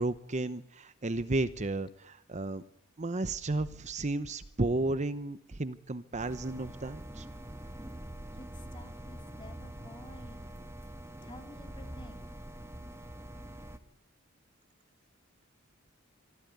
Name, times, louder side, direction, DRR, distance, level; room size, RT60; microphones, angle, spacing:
voice 1, 0.0-2.6 3.0-7.3, right 2 dB, 35° right, 13 dB, 0.8 m, -33 dB
sound 1, 6.2-13.8, right 1 dB, 15° right, 1.4 m, -45 dB
voice 2, 8.3-10.6 11.2-12.3, left 1 dB, 25° left, 6 dB, 3.0 m, -52 dB
25.0 x 15.5 x 9.3 m, 0.81 s
head